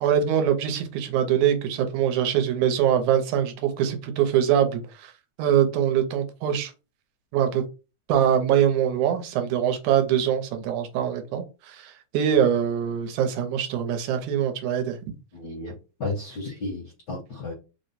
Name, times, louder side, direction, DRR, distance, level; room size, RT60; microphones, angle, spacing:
voice 1, 0.0-5.1 5.4-6.7 7.3-7.6 8.1-15.0, right 9 dB, 80° right, 2.0 m, -23 dB
voice 2, 15.3-15.7 16.0-17.5, left 2 dB, 60° left, 1.1 m, -33 dB
4.7 x 2.1 x 4.0 m
omnidirectional pair, 3.5 m